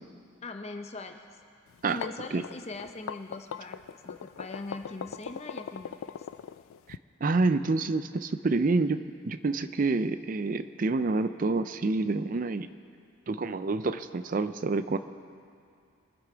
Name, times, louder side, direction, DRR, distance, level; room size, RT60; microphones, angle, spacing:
voice 1, 0.4-1.4 1.8-6.3, left 2 dB, 30° left, 6 dB, 0.7 m, -41 dB
sound 1, 1.7-7.0, left 7 dB, 90° left, 0.3 m, -40 dB
voice 2, 6.9-12.7 13.3-15.0, right 3 dB, 40° right, 12 dB, 0.4 m, -28 dB
23.5 x 8.0 x 5.0 m, 2.3 s
head